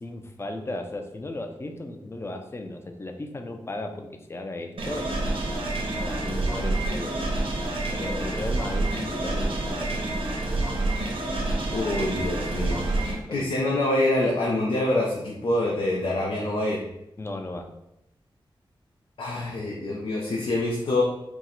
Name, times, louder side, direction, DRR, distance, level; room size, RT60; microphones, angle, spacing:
voice 1, 0.0-5.1 6.0-7.2 7.9-10.1 13.3-13.5 17.2-17.7, left 2 dB, 25° left, 5 dB, 0.5 m, -35 dB
sound 1, 4.8-13.2, right 2 dB, 85° right, 0.8 m, -28 dB
voice 2, 11.7-12.9 13.3-16.8 19.2-21.0, left 2 dB, 85° left, -3 dB, 0.7 m, -25 dB
4.6 x 2.1 x 3.9 m, 0.84 s
wide cardioid pair, 100°, 9 cm